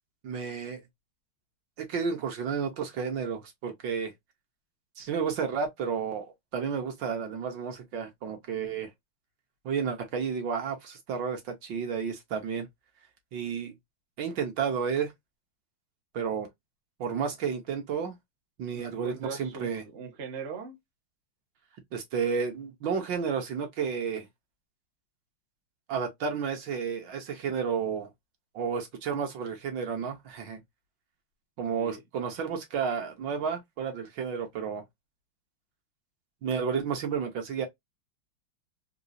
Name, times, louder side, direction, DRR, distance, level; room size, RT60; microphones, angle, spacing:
voice 1, 0.2-0.8 1.8-4.1 5.0-6.3 6.5-8.9 9.6-12.7 13.3-13.7 14.2-15.1 16.1-16.5 17.0-18.2 18.6-19.8 21.9-24.3 25.9-28.1 28.5-30.6 31.6-34.8 36.4-37.7, right 6 dB, 70° right, 1.4 m, -31 dB
voice 2, 18.7-20.8 31.8-32.0, right 5 dB, 50° right, 0.8 m, -40 dB
3.9 x 2.3 x 2.5 m
omnidirectional pair, 2.3 m